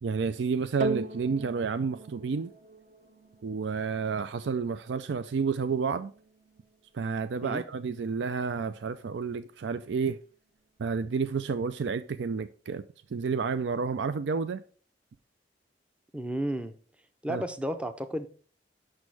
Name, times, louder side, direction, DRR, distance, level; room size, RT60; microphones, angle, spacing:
voice 1, 0.0-2.5 3.4-6.1 6.9-10.2 10.8-12.8 13.1-14.6 17.3-17.4, right 5 dB, 80° right, 0.4 m, -30 dB
sound 1, 0.8-9.4 10.1-10.2, right 3 dB, 45° right, 0.8 m, -41 dB
voice 2, 16.1-16.7 17.2-18.3, right 1 dB, 5° right, 0.5 m, -32 dB
6.3 x 6.3 x 4.6 m
head